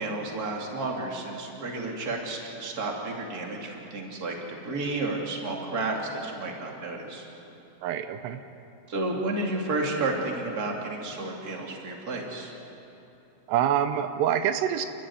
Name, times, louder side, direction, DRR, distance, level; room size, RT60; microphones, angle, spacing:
voice 1, 0.0-7.3 8.9-12.5, right 2 dB, 25° right, 0 dB, 2.6 m, -31 dB
voice 2, 7.8-8.4 13.5-14.9, right 10 dB, 85° right, 9 dB, 2.9 m, -26 dB
29.0 x 14.5 x 9.6 m, 3.0 s
omnidirectional pair, 4.8 m